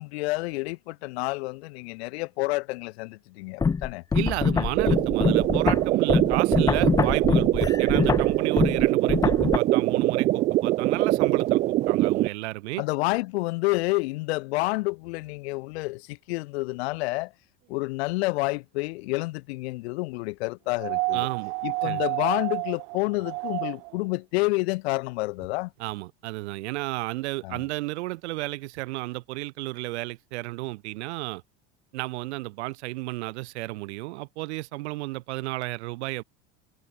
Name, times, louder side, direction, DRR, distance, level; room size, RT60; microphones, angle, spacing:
voice 1, 0.0-4.0 12.8-17.3 17.7-21.3 21.6-25.7 27.4-27.6, left 23 dB, 70° left, 3.9 m, -29 dB
sound 1, 3.6-9.6, left 5 dB, 10° left, 1.0 m, -24 dB
voice 2, 4.1-12.8 21.1-21.5 21.8-22.0 25.8-31.4 31.9-36.2, right 20 dB, 80° right, 5.0 m, -33 dB
sound 2, 4.8-12.3, right 16 dB, 20° right, 0.4 m, -23 dB
sound 3, 20.8-24.0 25.4-25.5, right 35 dB, 55° right, 2.9 m, -30 dB
cardioid pair, 175°, 33 cm